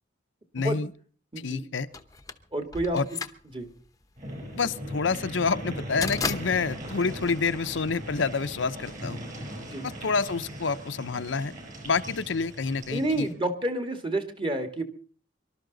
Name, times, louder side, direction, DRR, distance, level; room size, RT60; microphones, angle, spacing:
voice 1, 0.5-0.9 1.4-1.9 2.9-3.1 4.5-9.2 9.8-11.5 11.8-13.3, left 4 dB, 80° left, 10 dB, 0.7 m, -28 dB
voice 2, 1.3-1.7 2.5-3.0 3.5-3.7 9.7-9.9 12.9-14.8, right 1 dB, 25° right, 7 dB, 1.7 m, -29 dB
sound 1, 1.9-8.1, left 5 dB, 20° left, 0.8 m, -36 dB
sound 2, 4.2-13.3, equal, 45° right, 5.9 m, -39 dB
24.5 x 12.5 x 3.9 m, 0.41 s
head